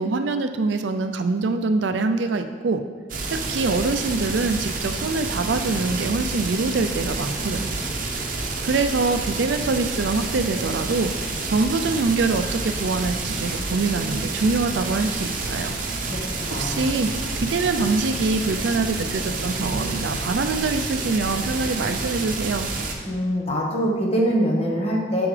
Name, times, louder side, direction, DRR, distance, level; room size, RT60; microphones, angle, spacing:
voice 1, 0.0-2.8 3.3-7.7 8.6-11.1 11.4-15.8 16.6-17.1 17.4-22.7, right 3 dB, 70° right, 8 dB, 0.4 m, -24 dB
sound 1, 3.1-22.9, right 3 dB, 50° right, 0.8 m, -29 dB
voice 2, 16.5-16.9 23.0-25.3, equal, 35° left, -2 dB, 1.2 m, -23 dB
7.2 x 6.9 x 3.3 m, 1.5 s
head